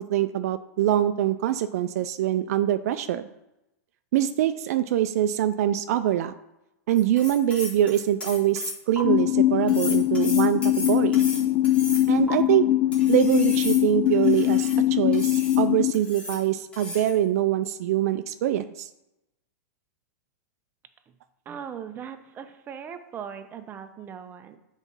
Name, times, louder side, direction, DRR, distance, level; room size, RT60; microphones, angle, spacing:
voice 1, 0.0-3.3 4.1-6.3 6.9-11.2 12.1-12.7 13.1-18.9, right 12 dB, 60° right, 11 dB, 0.4 m, -24 dB
sound 1, 6.9-9.0 9.7-12.3 12.9-14.8 15.1-15.6 15.9-16.4 16.7-17.2, left 2 dB, 10° left, 1.5 m, -36 dB
sound 2, 9.0-15.9, left 14 dB, 30° left, 0.3 m, -22 dB
voice 2, 21.5-24.6, right 8 dB, 20° right, 8 dB, 0.6 m, -39 dB
7.2 x 4.0 x 5.5 m, 0.92 s
hypercardioid pair, 140°, 9 cm